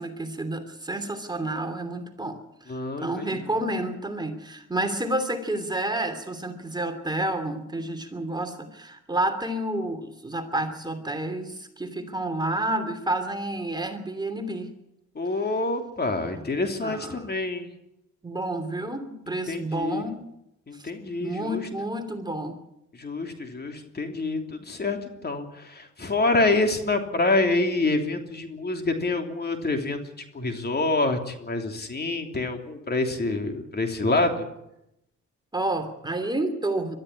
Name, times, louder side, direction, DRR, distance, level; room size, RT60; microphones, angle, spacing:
voice 1, 0.0-2.4 2.7-14.7 16.8-17.3 18.2-20.3 20.8-20.9 21.2-22.6 35.5-37.0, right 1 dB, 15° right, 6 dB, 3.0 m, -30 dB
voice 2, 2.7-3.5 15.1-17.7 19.5-20.0 20.7-21.7 22.9-30.0 30.3-34.5, left 2 dB, 35° left, 5 dB, 3.2 m, -27 dB
22.0 x 13.5 x 10.0 m, 0.86 s
cardioid pair, 90°, 30 cm